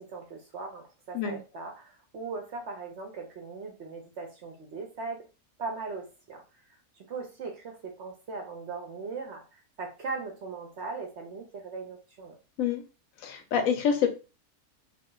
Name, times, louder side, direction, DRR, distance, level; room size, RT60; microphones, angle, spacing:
voice 1, 0.0-5.2 5.6-6.4 6.7-12.4, right 4 dB, 60° right, 2 dB, 0.8 m, -39 dB
voice 2, 13.2-14.1, left 7 dB, 70° left, 6 dB, 0.9 m, -26 dB
2.4 x 2.4 x 3.7 m, 0.32 s
omnidirectional pair, 1.6 m